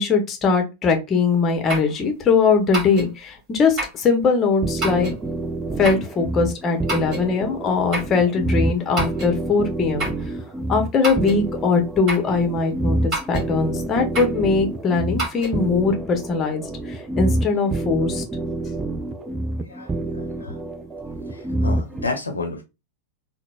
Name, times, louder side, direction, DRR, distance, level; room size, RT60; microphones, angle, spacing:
voice 1, 0.0-5.1 5.8-10.1 10.7-18.2, left 4 dB, 25° left, 0.7 m, -21 dB
sound 1, 1.7-1.9 2.7-3.1 3.8-4.0 4.8-5.2 5.8-6.1 6.9-7.3 7.9-8.2 9.0-9.3 10.0-10.2 11.0-11.4 12.1-12.3 13.1-13.5 14.1-14.4 15.2-15.6, right 2 dB, 35° right, 1.6 m, -28 dB
sound 2, 4.6-22.1, right 2 dB, 10° right, 0.4 m, -27 dB
voice 2, 19.6-20.6 21.3-22.6, left 3 dB, 75° left, 0.6 m, -31 dB
3.8 x 2.0 x 2.2 m
figure-of-eight pair, 90°, 0 cm